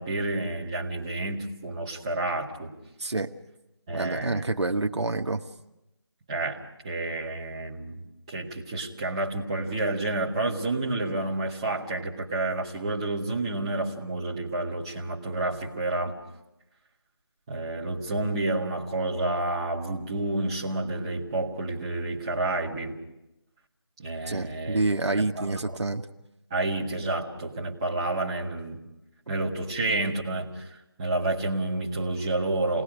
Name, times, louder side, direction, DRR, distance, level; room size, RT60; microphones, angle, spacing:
voice 1, 0.0-2.7 3.9-4.4 6.3-8.0 8.3-16.1 17.5-23.0 24.0-24.8 25.1-25.6 26.5-28.8 29.3-32.8, right 2 dB, 15° right, -6 dB, 1.6 m, -30 dB
voice 2, 3.0-3.3 3.9-5.4 24.3-26.1, right 2 dB, 85° right, 5 dB, 1.5 m, -27 dB
29.0 x 19.5 x 5.1 m, 0.92 s
figure-of-eight pair, 175°, 14 cm